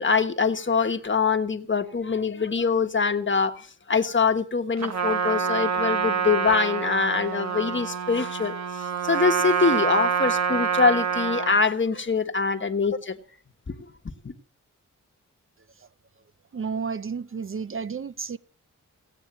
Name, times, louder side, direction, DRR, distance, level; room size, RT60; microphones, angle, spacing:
voice 1, 0.0-3.6 3.9-8.5 9.0-13.2 14.2-14.3, left 5 dB, 40° left, 1.4 m, -24 dB
Trumpet, 4.8-11.6, right 6 dB, 60° right, 1.3 m, -26 dB
voice 2, 16.5-18.4, right 5 dB, 45° right, 0.6 m, -31 dB
17.5 x 8.9 x 7.4 m
wide cardioid pair, 100°, 31 cm